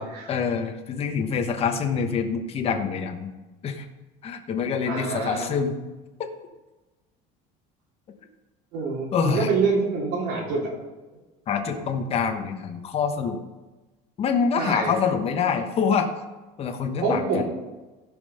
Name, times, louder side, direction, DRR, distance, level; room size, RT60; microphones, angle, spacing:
voice 1, 0.3-3.3 3.6-3.9 4.2-5.7 9.1-9.5 11.5-13.4 14.2-16.1 16.6-17.4, left 6 dB, 35° left, 4 dB, 1.2 m, -25 dB
voice 2, 4.9-5.5 8.7-10.7 14.6-15.0 17.0-17.4, right 4 dB, 65° right, -2 dB, 3.0 m, -26 dB
15.5 x 5.6 x 5.5 m, 1.2 s
cardioid pair, 150°, 18 cm